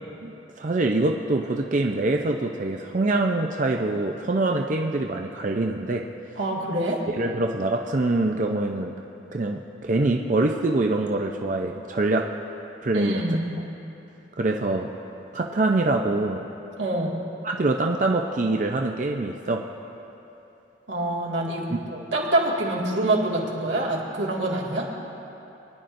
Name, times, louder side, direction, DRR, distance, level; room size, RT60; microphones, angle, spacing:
voice 1, 0.6-6.1 7.2-9.0 9.3-12.3 12.8-13.2 14.4-14.9 15.3-16.5 17.4-19.7 21.7-21.8, right 2 dB, 45° right, 2 dB, 0.5 m, -24 dB
voice 2, 6.4-7.0 12.9-13.6 16.8-17.2 20.9-24.9, right 1 dB, 85° right, -4 dB, 2.0 m, -26 dB
22.5 x 10.5 x 2.6 m, 2.9 s
head